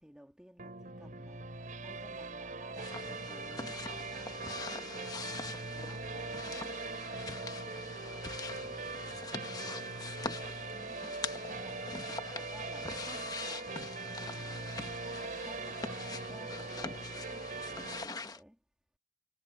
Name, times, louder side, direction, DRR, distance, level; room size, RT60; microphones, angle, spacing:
voice 1, 0.0-5.3 5.7-6.8 10.7-11.9 12.3-13.7 14.2-14.8 15.4-15.8 16.3-18.6, equal, 5° right, 2.0 m, -56 dB
sound 1, 0.6-18.1, right 3 dB, 50° right, 4.4 m, -41 dB
sound 2, 2.7-18.4, left 3 dB, 20° left, 1.1 m, -43 dB
voice 2, 4.3-4.6 8.4-10.5 16.2-16.3, equal, 50° left, 5.0 m, -58 dB
head